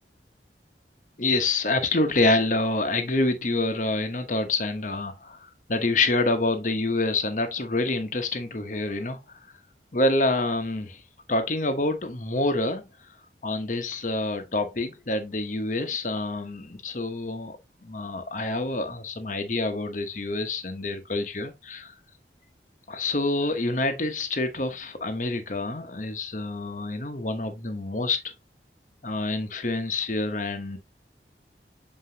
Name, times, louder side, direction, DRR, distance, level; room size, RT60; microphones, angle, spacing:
voice 1, 1.2-9.4 9.9-11.0 11.3-13.1 13.4-17.6 17.8-21.9 22.9-28.3 29.0-30.8, left 2 dB, 45° left, 1.0 m, -27 dB
7.6 x 4.5 x 2.8 m
head